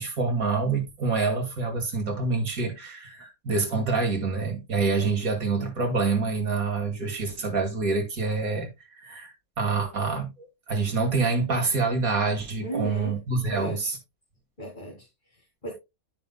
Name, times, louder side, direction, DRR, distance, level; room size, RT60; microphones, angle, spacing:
voice 1, 0.0-8.7 9.0-14.0, right 4 dB, 80° right, 2.7 m, -26 dB
voice 2, 12.6-13.9 14.6-15.7, right 2 dB, 35° left, 2.3 m, -37 dB
13.0 x 5.4 x 2.2 m
omnidirectional pair, 1.5 m